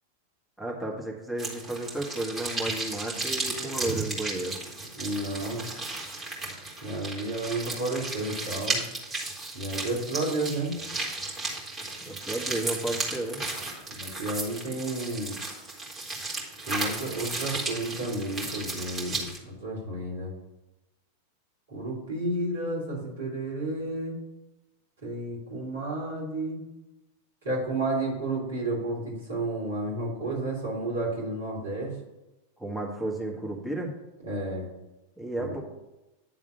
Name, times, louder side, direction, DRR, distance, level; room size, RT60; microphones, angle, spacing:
voice 1, 0.6-4.6 12.0-13.4 32.6-33.9 35.2-35.6, right 1 dB, ahead, -2 dB, 1.6 m, -33 dB
sound 1, 1.4-19.4, right 2 dB, 20° right, 2.3 m, -34 dB
voice 2, 5.0-5.7 6.8-8.8 9.5-10.7 14.0-15.3 16.6-20.3 21.7-24.2 25.0-26.6 27.4-31.9 34.2-34.7 35.4-35.5, right 2 dB, 70° right, -4 dB, 3.2 m, -31 dB
9.9 x 3.6 x 6.8 m, 0.99 s
figure-of-eight pair, 90°, 0 cm